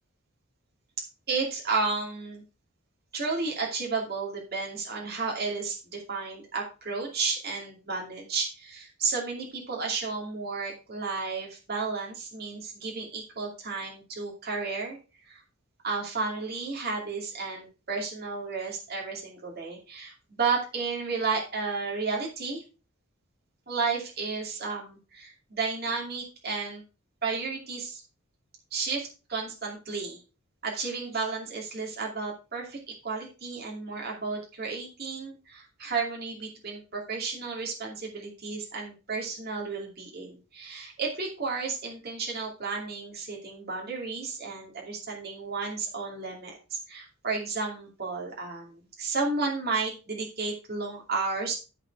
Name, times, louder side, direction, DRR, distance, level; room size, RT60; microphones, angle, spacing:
voice 1, 1.3-2.4 3.1-15.0 15.3-15.4 15.8-22.6 23.7-26.8 27.2-28.0 28.7-30.2 30.6-51.5, right 4 dB, 45° right, -1 dB, 2.6 m, -32 dB
13.0 x 4.4 x 4.6 m, 0.33 s
head